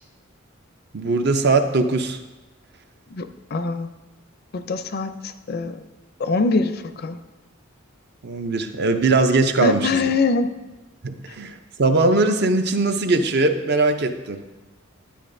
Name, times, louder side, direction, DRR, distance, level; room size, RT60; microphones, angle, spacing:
voice 1, 0.9-2.2 8.2-10.1 11.0-14.4, right 3 dB, 55° right, 7 dB, 0.6 m, -20 dB
voice 2, 3.1-3.9 4.5-5.8 6.2-7.2 9.6-10.5, left 3 dB, 50° left, 10 dB, 0.4 m, -23 dB
10.0 x 9.2 x 2.6 m, 1.1 s
head